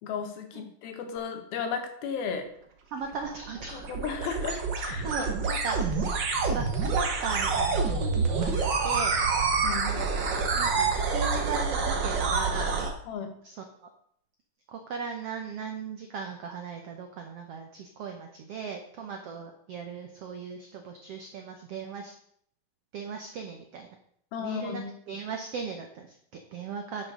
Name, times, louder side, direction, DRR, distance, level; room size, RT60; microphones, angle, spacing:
voice 1, 0.0-2.5 3.7-4.6 4.8-5.3 9.6-9.9 13.1-13.3 24.3-24.9, left 6 dB, 90° left, 6 dB, 3.2 m, -34 dB
voice 2, 2.9-3.9 5.0-6.1 6.5-9.2 9.9-10.1 10.5-12.7 13.4-13.9 14.7-22.1 22.9-23.9 24.4-27.1, right 5 dB, 80° right, 4 dB, 1.3 m, -38 dB
sound 1, 3.0-12.9, right 4 dB, 60° right, 1.1 m, -27 dB
9.2 x 6.3 x 6.3 m, 0.67 s
omnidirectional pair, 4.1 m